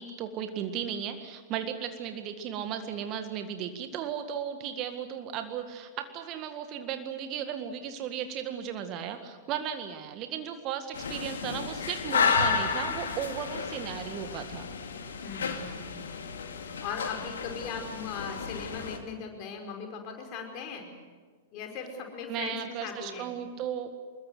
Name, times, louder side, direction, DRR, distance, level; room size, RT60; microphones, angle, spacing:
voice 1, 0.0-14.7 22.3-23.9, right 9 dB, 35° right, 8 dB, 1.8 m, -35 dB
sound 1, 10.9-19.0, left 5 dB, 65° left, 2.3 m, -32 dB
voice 2, 15.2-16.2 16.8-20.9 21.5-23.3, left 5 dB, 35° left, 3 dB, 5.2 m, -39 dB
25.5 x 22.0 x 7.9 m, 1.5 s
figure-of-eight pair, 100°, 0 cm